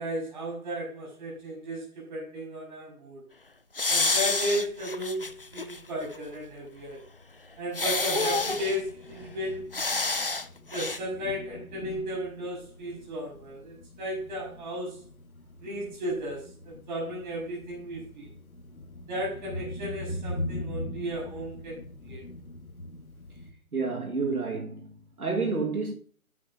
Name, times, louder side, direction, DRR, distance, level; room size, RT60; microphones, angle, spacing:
voice 1, 0.0-3.2 3.9-7.0 7.6-9.7 10.7-15.0 15.6-18.3 19.1-21.8 22.0-22.2, equal, 30° right, 4.8 m, -34 dB
sound 1, 3.8-5.8 6.2-6.3 7.7-8.8 9.7-10.5 10.7-11.0, left 3 dB, 40° left, 0.4 m, -28 dB
Thunder, 4.1-23.5, left 1 dB, 70° left, 1.8 m, -42 dB
voice 2, 23.7-25.9, right 4 dB, 80° right, 1.7 m, -30 dB
10.0 x 8.5 x 2.5 m
figure-of-eight pair, 145°, 44 cm